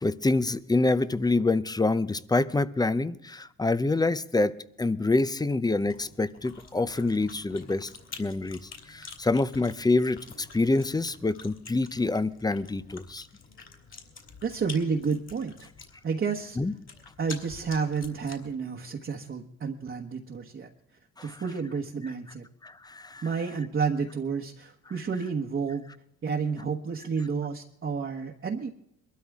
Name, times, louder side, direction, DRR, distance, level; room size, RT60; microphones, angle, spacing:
voice 1, 0.0-7.9 8.2-8.6 8.9-13.3 16.6-16.7 21.2-21.4 22.6-23.2, left 2 dB, 15° left, 15 dB, 0.7 m, -26 dB
Chewing mastication, 5.7-18.5, left 5 dB, 45° left, 3.3 m, -48 dB
voice 2, 14.4-15.7 16.0-16.6 17.2-20.7 21.2-22.5 23.2-25.8 26.2-28.7, right 5 dB, 40° right, 0 dB, 1.3 m, -30 dB
22.0 x 13.0 x 3.6 m, 0.74 s
cardioid pair, 90°, 30 cm